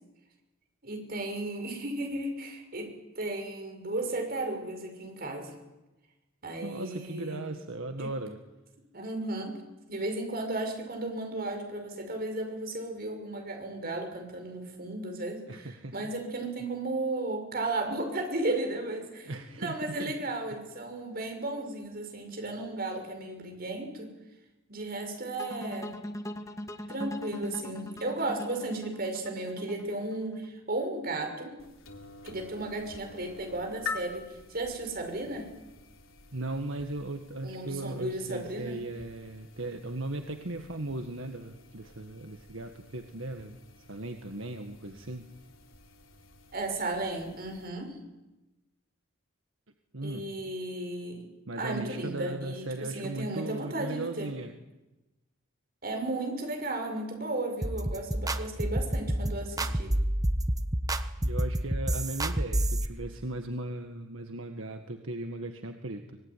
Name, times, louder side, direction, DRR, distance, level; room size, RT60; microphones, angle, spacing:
voice 1, 0.8-5.5 6.4-7.4 8.0-8.1 8.9-9.6 9.9-24.1 24.7-25.9 26.9-31.6 32.2-35.5 37.4-38.8 46.5-48.0 50.0-51.3 51.6-54.3 55.8-60.0, right 2 dB, 45° right, 4 dB, 6.4 m, -34 dB
voice 2, 6.6-8.4 15.5-16.0 19.3-20.2 36.3-45.3 49.9-50.3 51.5-54.5 61.2-66.2, right 2 dB, 75° right, 5 dB, 1.8 m, -37 dB
sound 1, 25.4-30.5, left 1 dB, 15° left, 1.7 m, -40 dB
sound 2, 31.6-47.7, left 5 dB, 75° left, 3.8 m, -47 dB
sound 3, 57.6-62.9, right 1 dB, 20° right, 1.1 m, -28 dB
25.0 x 21.0 x 10.0 m, 1.0 s
head